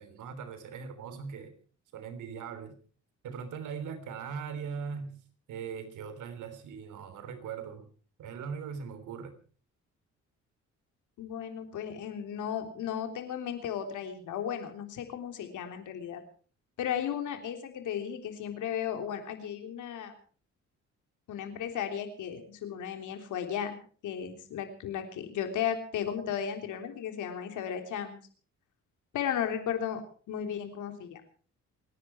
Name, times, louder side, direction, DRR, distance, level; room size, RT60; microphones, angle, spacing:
voice 1, 0.0-1.5 1.9-2.8 3.2-5.2 5.5-7.9 8.2-9.3, right 6 dB, 80° right, 9 dB, 3.5 m, -40 dB
voice 2, 11.2-16.2 16.8-20.1 21.3-23.8 24.0-28.2 29.1-30.0 30.3-31.2, left 9 dB, 80° left, 6 dB, 3.6 m, -35 dB
27.5 x 10.5 x 4.6 m, 0.42 s
cardioid pair, 90°, 30 cm